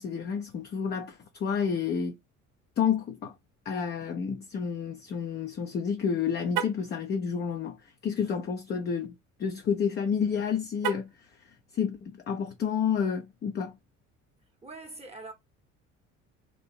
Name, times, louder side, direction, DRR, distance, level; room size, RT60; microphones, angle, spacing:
voice 1, 0.0-2.2 2.8-3.3 3.7-9.1 9.4-13.8, left 7 dB, 25° left, 0.5 m, -30 dB
Car, 6.5-6.9 10.8-11.3, right 10 dB, 65° right, 0.6 m, -33 dB
voice 2, 14.6-15.3, right 2 dB, 15° right, 0.8 m, -43 dB
2.8 x 2.6 x 4.1 m
figure-of-eight pair, 55°, 40 cm